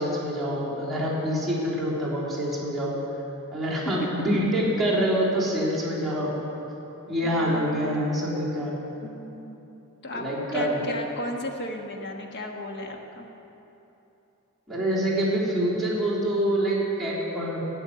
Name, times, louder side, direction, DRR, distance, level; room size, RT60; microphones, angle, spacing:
voice 1, 0.0-2.9 3.5-6.3 7.1-8.7 10.1-10.8 14.7-17.6, equal, ahead, -10 dB, 3.7 m, -26 dB
voice 2, 7.2-7.9 9.0-9.6 10.0-10.2 10.5-13.3, left 1 dB, 50° left, 2 dB, 1.4 m, -35 dB
12.5 x 7.2 x 9.5 m, 2.9 s
head